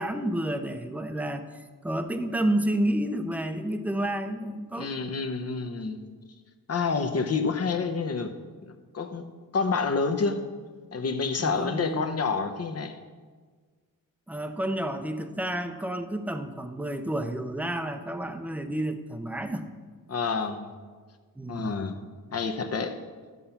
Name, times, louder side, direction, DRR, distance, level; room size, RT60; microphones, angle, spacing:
voice 1, 0.0-4.9 11.4-12.0 14.3-19.7 21.4-21.8, right 1 dB, 5° right, 7 dB, 0.6 m, -30 dB
voice 2, 4.7-6.0 6.7-8.3 8.6-9.3 9.5-10.4 10.9-12.9 20.1-20.7 21.5-21.9 22.3-23.0, left 4 dB, 45° left, 7 dB, 0.9 m, -28 dB
12.5 x 5.5 x 5.8 m, 1.5 s
wide cardioid pair, 120°, 35 cm